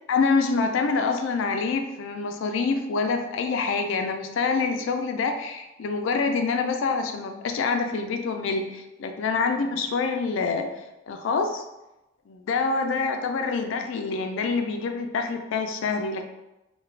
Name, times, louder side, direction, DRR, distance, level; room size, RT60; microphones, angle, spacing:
voice 1, 0.1-10.7 11.1-11.6 12.3-16.3, left 4 dB, 65° left, 6 dB, 0.3 m, -26 dB
2.3 x 2.1 x 3.1 m, 0.97 s
head